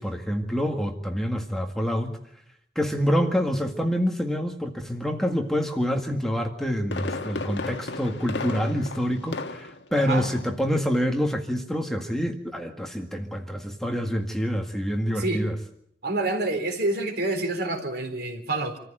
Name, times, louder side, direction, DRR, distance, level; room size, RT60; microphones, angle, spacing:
voice 1, 0.0-2.1 2.8-15.6, equal, ahead, 2 dB, 1.9 m, -27 dB
Fireworks, 6.6-9.9 10.2-10.6 10.9-11.0, left 3 dB, 70° left, 1.5 m, -34 dB
voice 2, 10.0-10.3 15.1-15.5 16.0-18.8, right 2 dB, 60° right, 5 dB, 3.8 m, -27 dB
27.0 x 14.5 x 9.0 m, 0.74 s
head